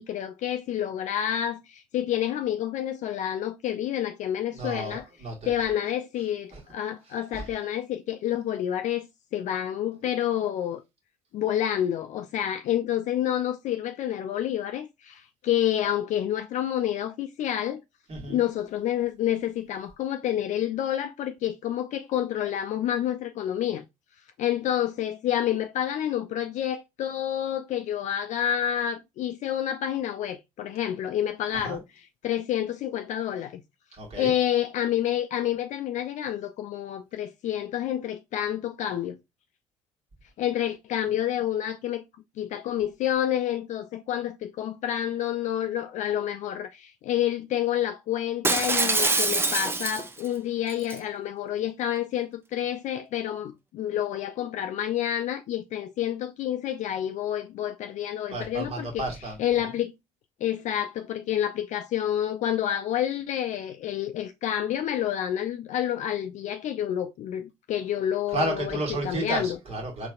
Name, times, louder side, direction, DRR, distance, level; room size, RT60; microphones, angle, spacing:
voice 1, 0.0-5.0 5.5-10.8 11.3-17.8 18.3-23.8 24.4-31.8 32.2-33.6 34.2-39.2 40.4-42.0 42.4-59.0 59.4-59.9 60.4-68.8 69.0-69.6, left 11 dB, 50° left, 0.4 m, -29 dB
voice 2, 4.5-5.7 6.5-6.6 7.3-7.5 18.1-18.4 31.5-31.8 34.0-34.3 58.3-59.7 68.3-70.1, right 2 dB, 40° right, 1.8 m, -32 dB
Shatter, 48.4-50.3 50.7-51.0, right 3 dB, 15° right, 0.5 m, -24 dB
3.9 x 3.3 x 2.4 m
hypercardioid pair, 55°, 16 cm